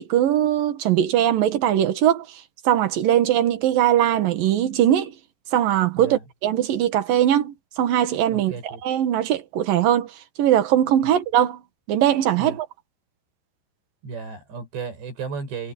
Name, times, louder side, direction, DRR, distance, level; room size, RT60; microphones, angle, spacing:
voice 1, 0.0-2.3 2.6-5.1 5.5-8.5 8.8-10.1 10.4-11.6 11.9-12.7, right 11 dB, 60° right, 3.0 m, -20 dB
voice 2, 8.3-8.8 11.0-11.1 12.4-12.6 14.0-15.7, right 5 dB, 80° right, 9.3 m, -34 dB
omnidirectional pair, 4.9 m